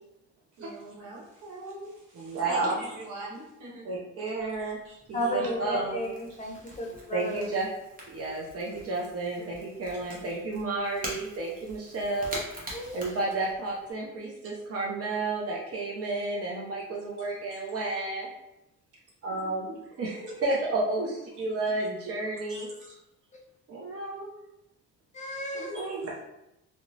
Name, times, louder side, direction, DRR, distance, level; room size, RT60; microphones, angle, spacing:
voice 1, 0.6-3.8 4.6-5.5 6.8-7.0 17.5-17.6 22.5-22.9 25.7-25.9, right 1 dB, 90° right, -5 dB, 0.9 m, -43 dB
voice 2, 2.1-2.8 3.8-4.8 5.1-6.1 7.1-7.7 8.1-12.4 12.9-18.3 19.2-19.7 20.0-22.7 23.7-24.3 25.5-26.2, right 2 dB, 50° right, -3 dB, 0.5 m, -31 dB
Crackle / Crack, 4.4-13.9, right 1 dB, 30° right, 0.9 m, -45 dB
voice 3, 5.1-7.5 12.7-13.2 20.2-20.3 25.1-25.9, equal, 25° left, 0 dB, 0.6 m, -33 dB
2.8 x 2.1 x 2.6 m, 0.88 s
cardioid pair, 90°, 30 cm